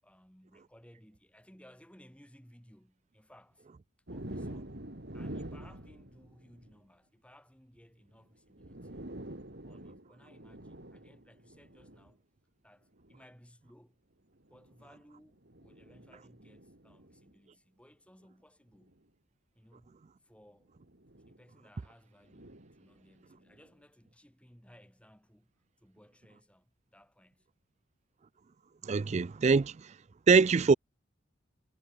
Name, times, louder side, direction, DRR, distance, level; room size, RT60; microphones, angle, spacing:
voice 1, 0.0-3.7 4.1-4.9 5.1-9.0 9.6-12.2 12.6-14.0 14.5-19.0 19.5-20.7 21.2-25.5 25.8-27.5, equal, 5° left, 6.6 m, -60 dB
sound 1, 4.1-6.8 8.1-8.2 8.5-12.1 13.0-13.2 14.4-17.3 18.8-19.0 20.7-21.4 22.2-23.7, right 1 dB, 55° right, 2.6 m, -47 dB
voice 2, 28.8-29.7 30.3-30.7, right 4 dB, 35° right, 0.4 m, -23 dB
head